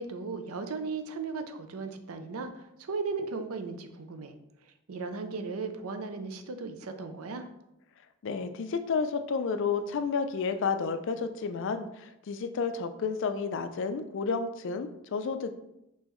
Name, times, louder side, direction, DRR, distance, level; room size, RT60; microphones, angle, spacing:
voice 1, 0.0-4.3 4.9-7.5, right 4 dB, 85° right, 8 dB, 0.5 m, -36 dB
voice 2, 8.2-15.5, left 5 dB, 60° left, 9 dB, 0.4 m, -31 dB
5.4 x 3.0 x 3.0 m, 0.87 s
head